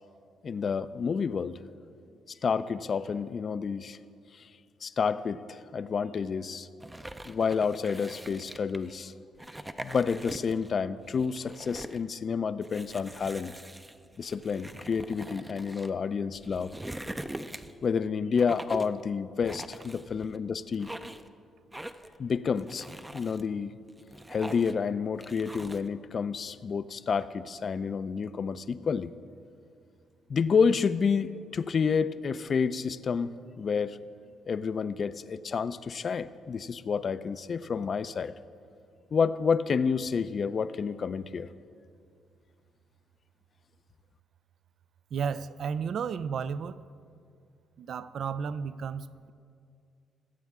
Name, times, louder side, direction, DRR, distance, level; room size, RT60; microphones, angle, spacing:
voice 1, 0.4-1.6 2.3-4.0 4.4-4.5 4.8-6.7 7.3-9.1 9.8-13.6 14.2-16.7 17.8-20.9 22.2-23.8 24.3-29.1 30.3-34.0 34.5-38.3 39.1-41.5, left 6 dB, 45° left, 14 dB, 0.4 m, -29 dB
sound 1, 6.8-8.9 9.3-10.7 11.0-12.0 12.6-15.9 16.3-17.9 18.3-19.0 19.4-20.4 20.7-21.3 21.7-22.2 22.6-23.4 23.9-24.8 25.2-25.9, right 1 dB, 10° right, 0.5 m, -43 dB
voice 2, 45.1-46.8 47.8-49.3, right 6 dB, 60° right, 15 dB, 0.4 m, -33 dB
21.5 x 8.3 x 3.6 m, 2.4 s
cardioid pair, 90°, 0 cm